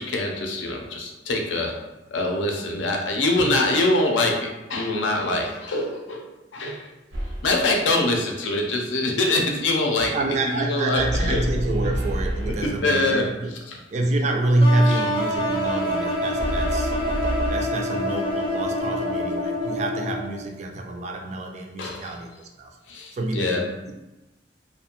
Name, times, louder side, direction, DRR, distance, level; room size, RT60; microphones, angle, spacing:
voice 1, 0.0-1.8 2.1-6.3 6.5-6.9 7.4-10.1 10.5-11.4 12.6-13.3 14.9-15.0 21.8-22.1 22.9-23.6, left 2 dB, 90° left, 2 dB, 0.5 m, -24 dB
sound 1, 7.1-7.7 11.0-13.0 16.4-17.5, equal, 90° right, 0.6 m, -28 dB
voice 2, 10.1-13.5 13.9-17.0 17.5-22.8 23.1-23.9, right 2 dB, 40° right, 2 dB, 0.3 m, -26 dB
sound 2, 14.6-20.4, left 1 dB, 30° left, 0.5 m, -26 dB
2.5 x 2.1 x 2.8 m, 1.0 s
head